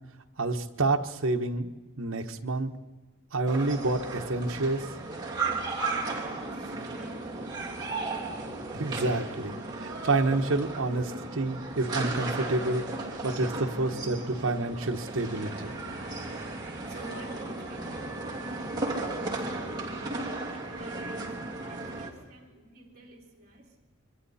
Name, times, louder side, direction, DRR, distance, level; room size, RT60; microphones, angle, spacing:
voice 1, 0.4-1.7 2.0-2.7 3.3-4.8 8.7-15.8, right 2 dB, 70° right, 5 dB, 1.2 m, -29 dB
sound 1, 3.5-22.1, right 3 dB, 20° right, 2.9 m, -35 dB
voice 2, 5.8-8.1 13.8-13.9 14.2-14.3 16.9-19.9 20.7-23.8, right 1 dB, 45° right, -3 dB, 3.7 m, -50 dB
26.0 x 23.5 x 4.2 m, 1.2 s
head